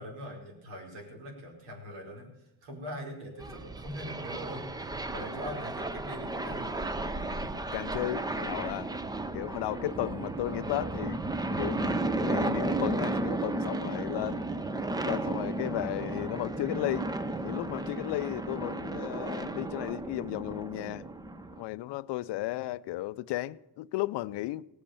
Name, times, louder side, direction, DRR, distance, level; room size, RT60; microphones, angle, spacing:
voice 1, 0.0-2.3 2.6-4.7 5.1-6.7, equal, 80° right, 4.8 m, -42 dB
sound 1, 3.4-21.6, right 2 dB, 10° right, 0.4 m, -34 dB
voice 2, 7.7-8.9 9.3-11.2 11.6-12.0 12.2-14.4 15.0-17.1 17.4-21.1 21.6-24.7, left 17 dB, 60° left, 0.6 m, -34 dB
18.5 x 7.7 x 7.0 m
cardioid pair, 125°, 49 cm